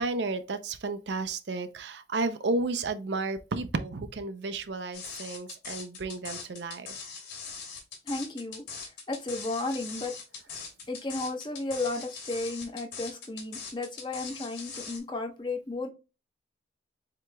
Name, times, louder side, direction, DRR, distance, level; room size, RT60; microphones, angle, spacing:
voice 1, 0.0-6.9, right 3 dB, 70° right, 0.5 m, -32 dB
sound 1, 4.9-15.0, left 5 dB, 85° left, 2.9 m, -41 dB
voice 2, 8.1-10.1 10.9-15.9, left 2 dB, 25° left, 0.8 m, -34 dB
7.5 x 2.9 x 2.3 m
head